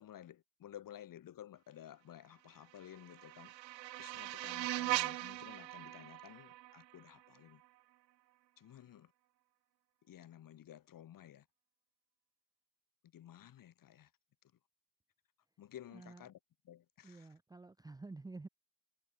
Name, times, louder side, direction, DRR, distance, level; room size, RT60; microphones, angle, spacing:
voice 1, 0.0-3.5 3.9-7.6 8.6-9.1 10.0-11.5 13.0-14.1 15.6-16.4 16.6-17.3, left 11 dB, 40° left, 3.5 m, -54 dB
sound 1, 2.6-7.7, right 15 dB, 85° right, 1.0 m, -40 dB
voice 2, 15.9-16.2 17.0-18.5, right 3 dB, 10° right, 0.9 m, -50 dB
hypercardioid pair, 85°, 49 cm